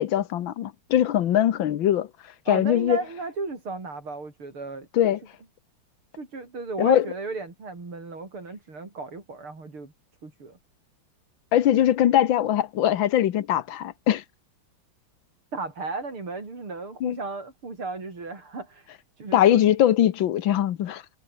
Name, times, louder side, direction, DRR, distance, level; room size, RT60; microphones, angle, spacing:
voice 1, 0.0-2.1 2.5-3.0 4.9-5.2 6.8-7.0 11.5-14.2 17.0-17.2 19.3-21.0, left 11 dB, 70° left, 1.7 m, -21 dB
voice 2, 2.5-4.9 6.1-9.9 10.2-10.6 15.5-19.6, right 3 dB, 85° right, 6.3 m, -35 dB
omnidirectional pair, 2.3 m